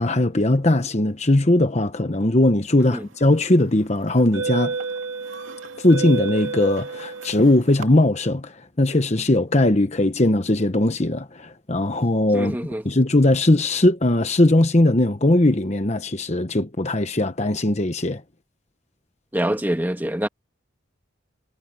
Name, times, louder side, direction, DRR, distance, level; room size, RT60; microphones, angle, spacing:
voice 1, 0.0-4.8 5.8-12.6 12.8-18.2, left 1 dB, 35° left, 1.1 m, -19 dB
sound 1, 3.1-3.3 4.1-7.9, right 4 dB, 80° right, 2.3 m, -30 dB
voice 2, 12.3-12.8 19.3-20.3, right 1 dB, 10° right, 1.8 m, -25 dB
head